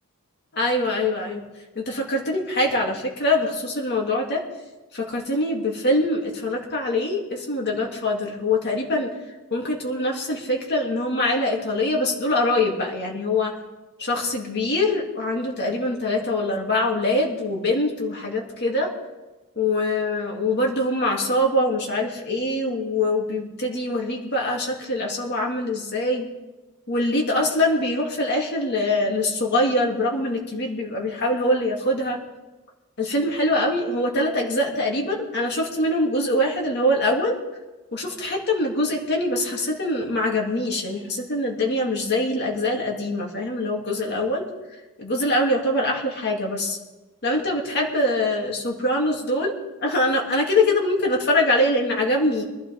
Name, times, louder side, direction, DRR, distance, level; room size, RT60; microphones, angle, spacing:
voice 1, 0.5-1.4 1.7-4.4 4.9-9.1 9.5-13.5 14.0-18.9 19.6-26.3 26.9-32.2 33.0-37.4 37.9-44.4 45.0-46.8 47.2-49.5 49.8-52.4, left 1 dB, 50° left, 0 dB, 2.5 m, -23 dB
24.0 x 12.0 x 3.6 m, 1.1 s
head